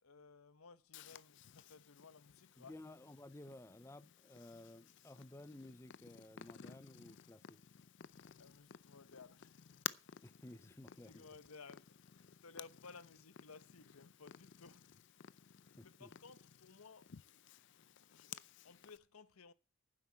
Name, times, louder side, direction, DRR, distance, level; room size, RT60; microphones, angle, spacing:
voice 1, 0.0-2.8 8.4-9.6 11.0-14.9 15.8-17.1 17.7-17.8 18.1-19.5, left 4 dB, 90° left, 1.0 m, -58 dB
Purr, 0.9-19.0, left 9 dB, 55° left, 0.5 m, -54 dB
voice 2, 2.6-7.6 10.2-11.3 15.8-16.1, left 1 dB, 15° left, 0.5 m, -55 dB
9.9 x 7.8 x 7.2 m
head